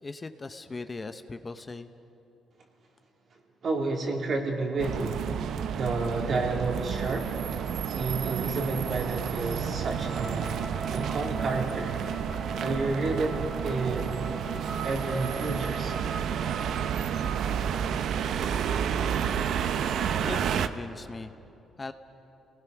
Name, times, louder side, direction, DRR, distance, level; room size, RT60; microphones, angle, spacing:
voice 1, 0.0-1.9 20.2-21.3 21.8-21.9, left 3 dB, 25° left, 9 dB, 0.8 m, -39 dB
voice 2, 3.6-5.2 5.7-7.3 7.9-10.6 10.9-12.1 12.6-14.1 14.8-15.9, right 3 dB, 55° right, 0 dB, 3.3 m, -30 dB
sound 1, 4.8-20.7, right 8 dB, 75° right, 0.7 m, -30 dB
Wind instrument woodwind instrument, 9.9-16.4, equal, 5° right, 1.0 m, -42 dB
29.0 x 19.0 x 6.1 m, 3.0 s
cardioid pair, 90°, 0 cm